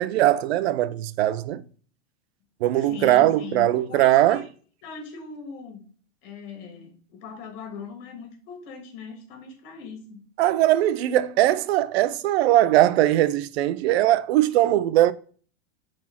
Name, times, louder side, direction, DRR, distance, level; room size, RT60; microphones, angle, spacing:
voice 1, 0.0-1.6 2.6-4.4 10.4-15.1, right 14 dB, 65° right, 0.6 m, -20 dB
voice 2, 2.7-4.4 4.8-5.8 6.2-10.2, left 6 dB, 50° left, 2.8 m, -40 dB
7.2 x 4.4 x 5.8 m
supercardioid pair, 155°, 34 cm